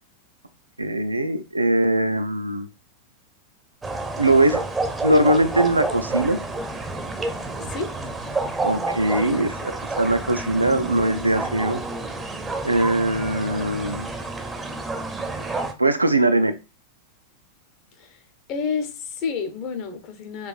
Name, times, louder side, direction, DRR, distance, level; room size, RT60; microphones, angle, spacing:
voice 1, 0.8-2.7 4.2-4.6 5.0-6.4 8.6-9.5 10.0-11.8 12.6-14.1 15.8-16.5, right 1 dB, 85° right, 0.4 m, -21 dB
sound 1, 3.8-15.7, right 2 dB, 15° right, 0.6 m, -29 dB
voice 2, 9.1-9.7 18.0-18.2 18.5-20.5, left 5 dB, 40° left, 0.7 m, -30 dB
4.5 x 2.5 x 2.3 m
figure-of-eight pair, 90°, 0 cm